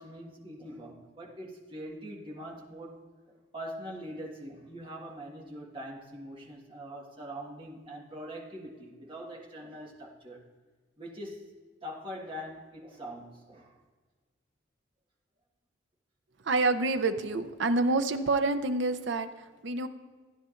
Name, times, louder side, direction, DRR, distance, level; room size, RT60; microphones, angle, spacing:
voice 1, 0.0-3.0 3.3-10.4 11.0-11.4 11.8-13.7, equal, 25° right, -2 dB, 1.5 m, -43 dB
voice 2, 16.4-19.9, right 3 dB, 65° right, 10 dB, 0.6 m, -28 dB
16.0 x 10.0 x 2.5 m, 1.4 s
head